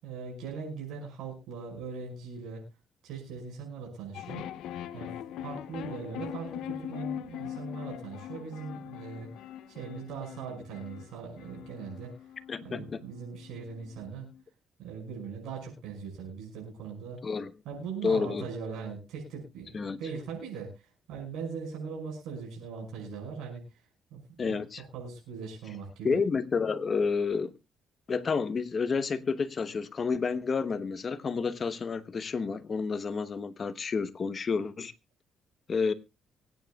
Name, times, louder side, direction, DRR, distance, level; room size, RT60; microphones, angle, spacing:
voice 1, 0.0-2.6 3.0-4.4 4.9-5.1 5.4-9.3 9.7-12.1 12.6-14.3 14.8-17.2 17.6-23.6 24.1-26.2, right 5 dB, 90° right, 5.8 m, -40 dB
sound 1, 4.1-14.4, left 10 dB, 85° left, 0.7 m, -42 dB
voice 2, 12.5-13.0 17.2-17.5 18.0-18.5 19.7-20.0 24.4-24.8 26.0-27.5 28.1-34.9 35.7-35.9, left 5 dB, 40° left, 1.0 m, -30 dB
24.0 x 9.4 x 2.3 m
cardioid pair, 90°, 0 cm